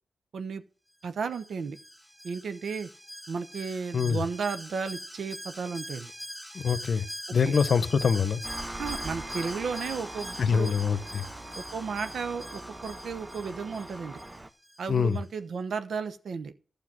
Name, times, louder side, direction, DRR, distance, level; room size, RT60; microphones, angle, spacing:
voice 1, 1.0-1.8 2.2-2.9 3.3-6.1 7.4-7.5 8.8-10.7 11.5-14.2 14.8-16.5, right 5 dB, 70° right, 1.0 m, -34 dB
Alarm, 1.3-14.8 15.1-15.2, equal, ahead, 0.7 m, -43 dB
voice 2, 6.5-7.0 7.3-8.4 10.4-11.2 14.9-15.2, left 6 dB, 65° left, 0.9 m, -24 dB
Engine, 8.4-14.5, right 2 dB, 25° right, 0.9 m, -41 dB
12.0 x 7.0 x 6.1 m
supercardioid pair, 50°, 0 cm